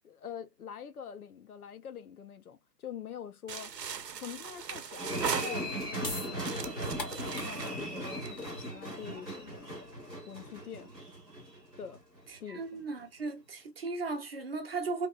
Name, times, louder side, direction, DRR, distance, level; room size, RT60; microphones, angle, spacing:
voice 1, 0.0-3.7 4.1-9.7 10.3-10.9 11.8-12.0 12.4-12.8, left 8 dB, 65° left, 0.6 m, -45 dB
sound 1, 3.5-6.0 6.4-8.6, right 6 dB, 75° right, 0.7 m, -38 dB
sound 2, 5.0-12.3 12.6-12.7, right 1 dB, 5° left, 0.6 m, -38 dB
sound 3, 6.0-12.3, left 3 dB, 90° left, 1.3 m, -46 dB
voice 2, 12.3-15.1, right 3 dB, 40° right, 0.6 m, -36 dB
2.9 x 2.7 x 2.3 m
figure-of-eight pair, 135°, 49 cm